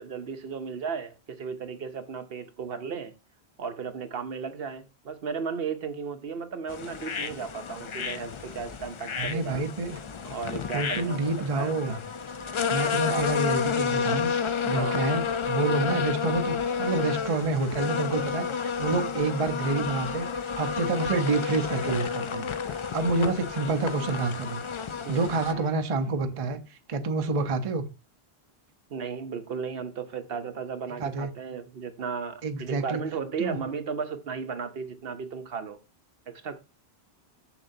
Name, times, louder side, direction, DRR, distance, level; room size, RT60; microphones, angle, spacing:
voice 1, 0.0-3.1 3.6-9.6 10.3-12.0 12.8-13.3 14.7-15.1 25.1-25.3 28.9-35.8 36.3-36.6, right 6 dB, 65° right, 0.9 m, -35 dB
sound 1, 6.7-25.5, left 6 dB, 55° left, 0.3 m, -31 dB
voice 2, 9.1-10.0 10.7-12.0 12.7-20.3 20.6-24.6 25.1-27.9 31.0-31.3 32.4-33.0 33.4-33.6, right 3 dB, 35° right, 0.7 m, -28 dB
sound 2, 19.6-20.3 21.5-22.2 23.6-24.5 25.5-26.2 27.4-27.6, left 6 dB, 85° left, 1.4 m, -46 dB
7.1 x 6.6 x 2.7 m
omnidirectional pair, 1.1 m